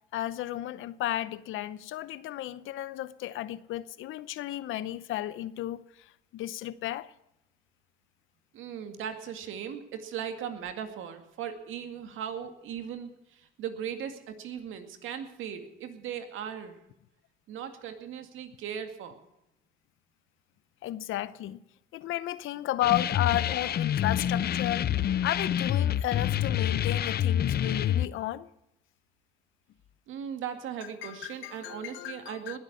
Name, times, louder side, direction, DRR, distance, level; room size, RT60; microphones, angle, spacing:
voice 1, 0.1-7.1 20.8-21.6 21.9-28.5 31.0-32.6, left 13 dB, 85° left, 0.8 m, -33 dB
voice 2, 8.5-16.8 17.5-19.2 30.1-32.6, right 8 dB, 85° right, 2.1 m, -38 dB
sound 1, 22.8-28.1, left 10 dB, 50° left, 0.6 m, -27 dB
20.0 x 8.1 x 8.4 m
cardioid pair, 90°, 20 cm